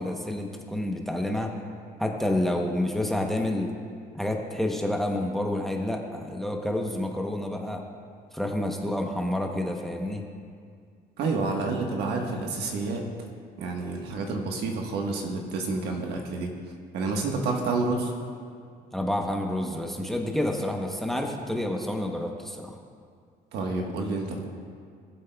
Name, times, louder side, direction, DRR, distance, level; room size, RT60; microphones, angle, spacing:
voice 1, 0.0-1.5 2.0-3.7 4.1-7.8 8.3-10.2 18.9-22.8, left 1 dB, ahead, 2 dB, 0.8 m, -29 dB
voice 2, 11.2-13.1 13.6-16.5 16.9-18.1 23.5-24.4, right 3 dB, 75° right, 2 dB, 1.4 m, -29 dB
17.5 x 7.6 x 2.3 m, 2.2 s
cardioid pair, 110°, 17 cm